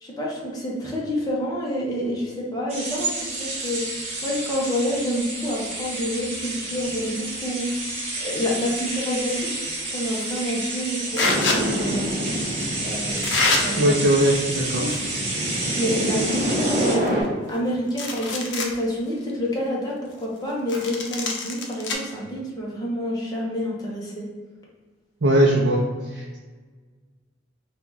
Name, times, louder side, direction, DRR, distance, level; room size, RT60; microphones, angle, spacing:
voice 1, 0.0-3.8 4.2-7.7 8.2-12.1 12.8-13.9 14.8-15.0 15.8-24.3, equal, 20° left, -4 dB, 0.8 m, -28 dB
sound 1, 2.7-16.9, right 2 dB, 30° right, 1.2 m, -30 dB
sound 2, 10.1-10.4 11.1-11.6 12.5-12.7 13.2-13.6 14.5-15.2 15.5-15.6 16.1-16.2 16.5-17.6 17.9-18.7 19.2-19.3 20.7-21.9, left 3 dB, 65° left, 0.6 m, -26 dB
sound 3, 11.2-17.2, equal, 5° right, 1.4 m, -28 dB
voice 2, 13.8-14.9 15.6-15.7 25.2-25.8 26.1-26.4, right 1 dB, 60° right, -3 dB, 0.6 m, -20 dB
4.6 x 2.4 x 3.9 m, 1.4 s
head